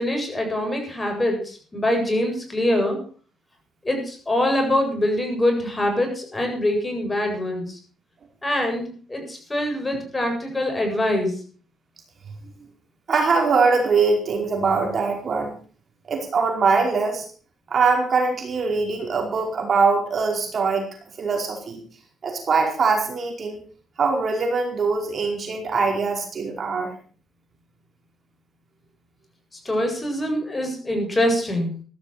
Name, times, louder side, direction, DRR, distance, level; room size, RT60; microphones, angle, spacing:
voice 1, 0.0-3.0 3.8-7.8 8.4-11.3 29.5-31.7, left 1 dB, 20° left, 3 dB, 7.9 m, -24 dB
voice 2, 13.1-15.5 16.1-17.2 17.7-20.8 21.2-21.8 22.2-23.6 24.0-26.9, right 4 dB, 50° right, 2 dB, 4.9 m, -22 dB
15.0 x 12.5 x 6.1 m, 0.42 s
cardioid pair, 90°, 0 cm